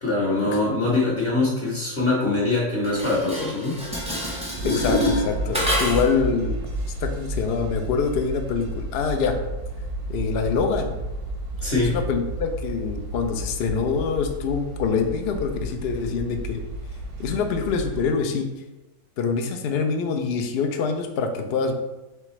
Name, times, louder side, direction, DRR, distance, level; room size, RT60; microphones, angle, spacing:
voice 1, 0.0-3.8 11.6-11.9, left 2 dB, 45° left, -5 dB, 1.0 m, -23 dB
Dishes pots and pans, 2.8-6.2, equal, 10° right, 0.4 m, -27 dB
voice 2, 4.6-6.5 7.0-9.4 10.1-11.0 11.9-16.6 17.2-18.5 19.2-21.7, left 5 dB, 90° left, 5 dB, 0.5 m, -25 dB
sound 1, 4.6-18.1, right 1 dB, 85° right, 1.3 m, -32 dB
4.6 x 3.4 x 3.0 m, 1.0 s
omnidirectional pair, 1.7 m